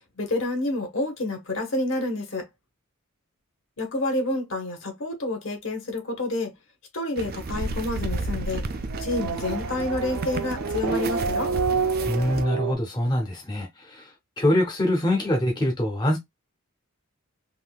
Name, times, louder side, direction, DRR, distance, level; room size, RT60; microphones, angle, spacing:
voice 1, 0.2-2.4 3.8-6.5 6.9-8.6 9.0-11.5, left 2 dB, 60° left, 1.2 m, -28 dB
sound 1, 7.2-12.4, right 3 dB, 45° right, 0.4 m, -34 dB
Race car auto racing / Accelerating revving vroom, 7.5-12.7, right 4 dB, 90° right, 0.6 m, -29 dB
voice 2, 12.1-14.1 14.4-16.2, left 1 dB, 20° left, 0.7 m, -24 dB
3.7 x 2.7 x 2.3 m
head